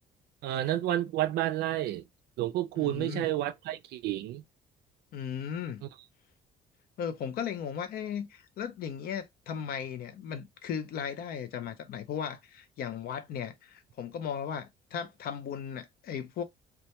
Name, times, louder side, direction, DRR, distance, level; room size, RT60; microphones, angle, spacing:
voice 1, 0.4-2.0 2.4-4.4, right 13 dB, 75° right, 0.4 m, -30 dB
voice 2, 2.8-3.3 5.1-5.9 7.0-16.4, left 8 dB, 65° left, 0.5 m, -36 dB
2.2 x 2.1 x 2.8 m
cardioid pair, 110°, 17 cm